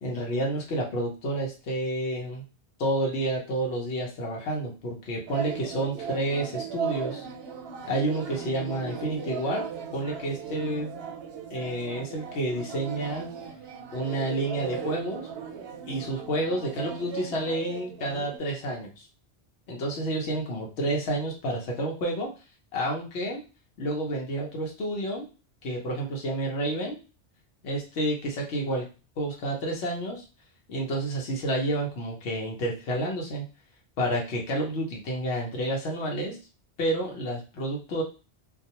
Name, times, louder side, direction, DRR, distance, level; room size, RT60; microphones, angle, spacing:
voice 1, 0.0-2.4 2.8-7.3 7.9-9.7 9.9-10.9 11.5-13.3 13.9-15.3 15.9-19.1 19.7-22.3 22.7-23.4 23.8-25.3 25.6-27.0 27.6-28.9 29.2-30.2 30.7-33.5 34.0-36.4 36.8-38.0, right 1 dB, 70° left, -1 dB, 1.0 m, -30 dB
sound 1, 5.3-18.4, right 7 dB, 65° right, 0.8 m, -37 dB
2.3 x 2.3 x 2.8 m, 0.32 s
omnidirectional pair, 1.2 m